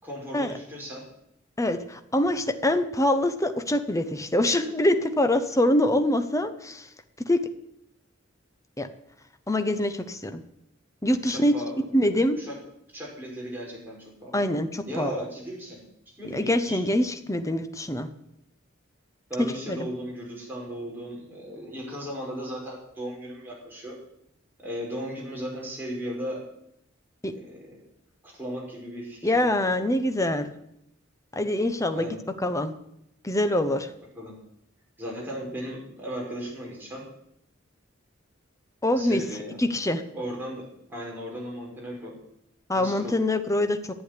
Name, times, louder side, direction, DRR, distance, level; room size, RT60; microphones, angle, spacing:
voice 1, 0.0-1.1 11.2-11.8 12.4-12.5 12.9-14.4 14.9-15.8 16.2-16.8 19.3-23.9 24.6-26.4 27.3-27.8 28.2-29.6 31.9-32.2 34.2-34.3 35.0-37.1 39.0-39.6 40.1-42.1 42.7-43.2, equal, 10° right, -4 dB, 5.7 m, -36 dB
voice 2, 1.6-6.9 7.3-7.5 8.8-8.9 9.5-10.4 11.0-11.5 11.9-12.4 14.3-15.1 16.3-18.1 19.4-19.8 27.2-27.3 29.2-30.5 31.4-32.1 32.4-32.7 33.2-33.9 38.8-39.2 39.6-40.0 42.7-43.8, left 1 dB, 15° left, 9 dB, 0.9 m, -24 dB
11.5 x 8.7 x 9.9 m, 0.78 s
head